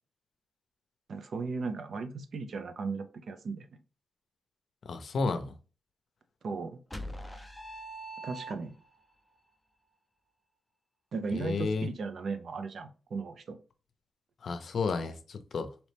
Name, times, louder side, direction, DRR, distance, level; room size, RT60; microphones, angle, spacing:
voice 1, 1.1-3.7 6.4-6.8 8.2-8.8 11.1-13.6, right 4 dB, 65° right, 0.6 m, -36 dB
voice 2, 4.9-5.5 11.3-11.9 14.4-15.7, left 4 dB, 60° left, 0.6 m, -32 dB
sound 1, 6.9-9.0, right 1 dB, 5° left, 0.6 m, -42 dB
4.1 x 2.9 x 3.3 m
wide cardioid pair, 120°, 0 cm